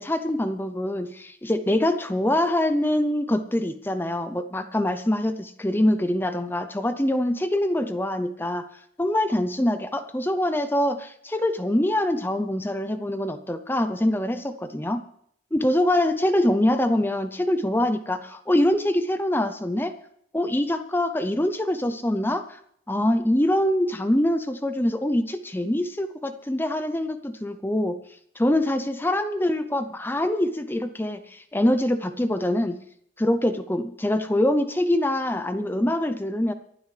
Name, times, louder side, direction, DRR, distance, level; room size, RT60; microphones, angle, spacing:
voice 1, 0.0-8.7 9.0-15.0 15.5-19.9 20.3-22.6 22.9-28.0 28.4-32.8 33.2-36.5, left 1 dB, 10° left, 10 dB, 0.6 m, -24 dB
29.5 x 12.0 x 3.3 m, 0.69 s
head